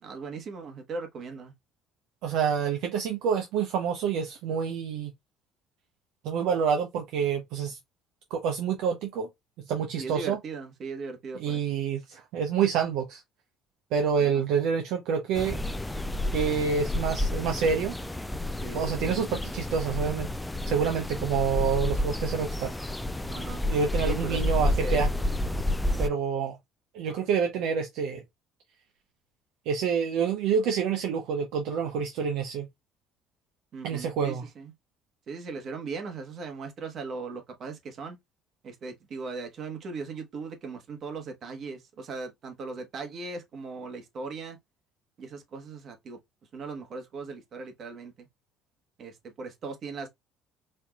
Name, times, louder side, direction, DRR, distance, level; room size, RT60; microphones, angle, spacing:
voice 1, 0.0-1.5 10.0-11.8 14.2-14.5 18.6-19.2 23.3-23.7 24.0-25.1 33.7-34.7 35.3-38.2 38.6-44.6 45.2-46.2 46.5-48.3 49.0-50.1, right 4 dB, 55° right, 1.2 m, -38 dB
voice 2, 2.2-5.1 6.2-7.8 8.3-9.3 9.6-10.4 11.3-13.2 13.9-15.6 16.3-17.9 18.7-20.3 20.7-22.7 23.7-25.1 26.0-26.6 26.9-28.2 29.7-32.7 33.8-34.4, right 6 dB, 75° right, 0.6 m, -27 dB
sound 1, 15.4-26.1, left 1 dB, 10° left, 0.3 m, -30 dB
4.3 x 2.7 x 2.3 m
supercardioid pair, 75°, 0 cm